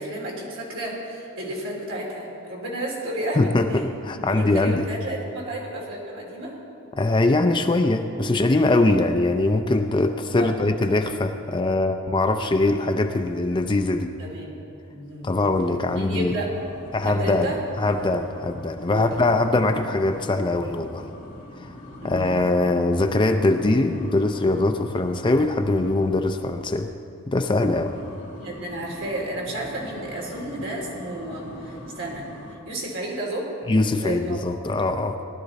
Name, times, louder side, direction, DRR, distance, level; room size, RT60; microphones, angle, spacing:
voice 1, 0.0-3.8 4.3-6.6 10.4-10.5 14.2-14.6 14.9-15.3 15.9-16.5 17.0-17.6 18.9-19.1 22.0-22.3 28.3-32.3 32.6-33.5 34.0-34.7, right 1 dB, 60° right, -3 dB, 3.4 m, -32 dB
voice 2, 3.4-4.9 7.0-14.1 15.2-16.4 16.9-17.5 17.8-21.1 21.6-21.7 22.0-26.9 27.3-27.9 33.7-35.2, left 2 dB, 20° left, 6 dB, 0.4 m, -22 dB
sound 1, 15.2-26.3 27.4-32.6, left 1 dB, 40° left, 2.1 m, -42 dB
18.5 x 12.0 x 4.1 m, 2.7 s
head